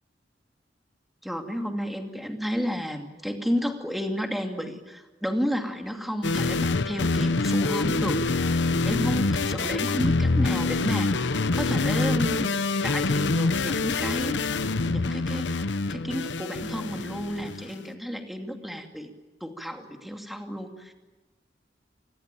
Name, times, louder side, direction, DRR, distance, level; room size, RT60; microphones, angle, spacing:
voice 1, 1.2-12.5 12.8-19.1 19.4-20.9, equal, ahead, 4 dB, 2.5 m, -32 dB
sound 1, 6.2-17.7, left 3 dB, 85° left, 0.9 m, -25 dB
27.0 x 21.0 x 9.0 m, 1.2 s
head